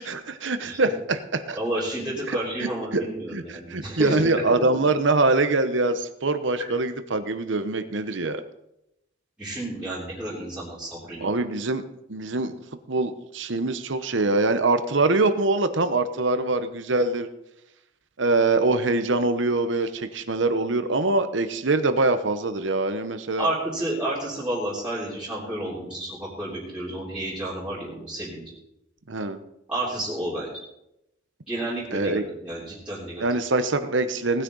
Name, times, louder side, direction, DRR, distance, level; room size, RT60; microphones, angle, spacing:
voice 1, 0.0-1.6 2.6-3.0 3.3-8.4 11.2-11.8 12.1-12.6 12.9-17.3 18.2-23.5 29.1-29.4 31.9-32.2 33.2-34.4, right 2 dB, 70° right, 10 dB, 1.0 m, -24 dB
voice 2, 1.5-4.3 6.6-6.7 9.4-11.5 23.4-28.5 29.7-30.5 31.5-33.2, right 1 dB, 5° right, -10 dB, 3.4 m, -31 dB
18.5 x 10.0 x 4.0 m, 0.84 s
head